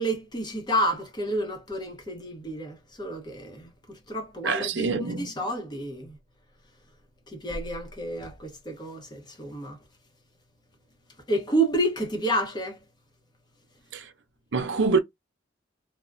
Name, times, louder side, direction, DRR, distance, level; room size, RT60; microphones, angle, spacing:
voice 1, 0.0-3.7 4.1-6.1 7.3-9.8 11.3-12.8, right 1 dB, 20° left, 0.7 m, -29 dB
voice 2, 4.4-5.3 13.9-14.0 14.5-15.0, right 4 dB, 70° right, 0.5 m, -25 dB
3.4 x 2.0 x 2.4 m
head